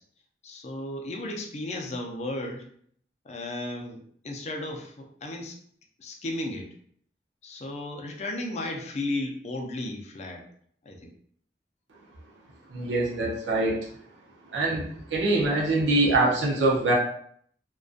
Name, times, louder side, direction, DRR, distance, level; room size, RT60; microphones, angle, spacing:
voice 1, 0.4-2.6 3.2-5.6 6.0-6.7 7.4-10.4 10.8-11.1, left 1 dB, 40° left, 2 dB, 0.4 m, -34 dB
voice 2, 12.7-13.8 14.5-16.9, right 2 dB, 90° right, -3 dB, 0.6 m, -24 dB
2.5 x 2.2 x 2.4 m, 0.63 s
head